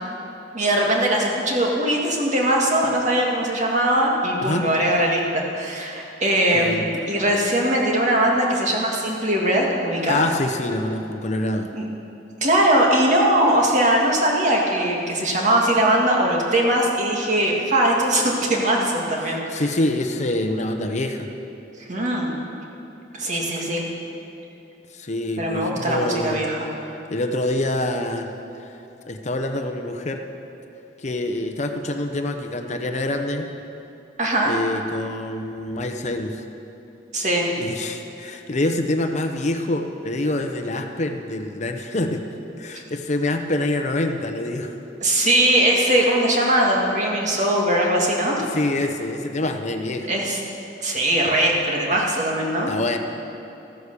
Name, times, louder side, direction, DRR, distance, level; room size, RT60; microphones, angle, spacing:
voice 1, 0.5-10.2 11.7-11.8 12.4-19.6 21.8-22.3 23.1-23.8 25.4-26.7 34.2-34.5 37.1-37.5 45.0-48.5 50.1-50.4 50.8-52.7, right 1 dB, 40° right, -1 dB, 2.1 m, -20 dB
voice 2, 6.5-6.9 10.1-11.7 19.2-21.3 24.9-26.4 27.1-28.3 29.1-30.2 31.0-33.5 34.4-36.4 37.6-42.3 42.6-44.7 48.3-50.2 52.7-53.0, left 1 dB, 40° left, 6 dB, 0.8 m, -26 dB
14.5 x 9.8 x 6.8 m, 3.0 s
head